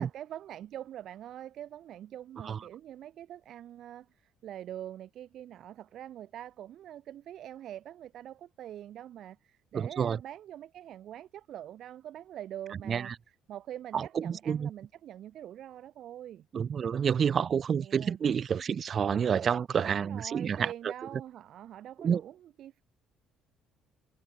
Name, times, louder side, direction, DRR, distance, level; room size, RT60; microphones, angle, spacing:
voice 1, 0.0-13.1 13.5-16.5 17.8-18.2 19.8-22.8, right 11 dB, 65° right, 7.5 m, -44 dB
voice 2, 9.7-10.2 12.9-13.1 13.9-14.7 16.5-20.7 22.0-22.2, right 7 dB, 45° right, 1.5 m, -29 dB
supercardioid pair, 80°, 0 cm